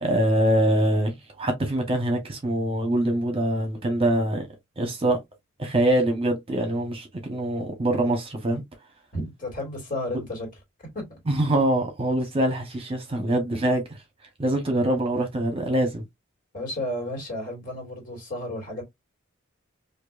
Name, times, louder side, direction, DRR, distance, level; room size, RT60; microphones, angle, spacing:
voice 1, 0.0-4.5 4.8-5.2 5.6-8.6 11.3-14.0 14.4-16.0, right 1 dB, 30° right, 1.0 m, -24 dB
voice 2, 9.1-10.5 10.8-11.2 16.5-18.8, left 1 dB, 40° left, 2.3 m, -32 dB
4.4 x 2.7 x 2.5 m
head